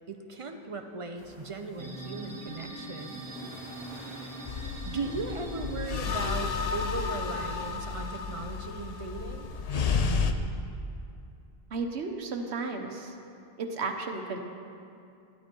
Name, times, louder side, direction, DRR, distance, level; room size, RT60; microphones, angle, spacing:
voice 1, 0.1-3.2 4.8-9.5, right 3 dB, 35° right, 5 dB, 0.8 m, -37 dB
sound 1, 1.2-6.2, equal, 70° left, 3.2 m, -51 dB
sound 2, 1.8-8.3, right 2 dB, 55° right, 1.8 m, -44 dB
sound 3, 4.5-10.3, left 5 dB, 45° left, 0.6 m, -31 dB
voice 2, 11.7-13.1 13.6-14.4, right 4 dB, 80° right, 4 dB, 1.3 m, -33 dB
12.5 x 12.0 x 4.5 m, 2.5 s
omnidirectional pair, 1.1 m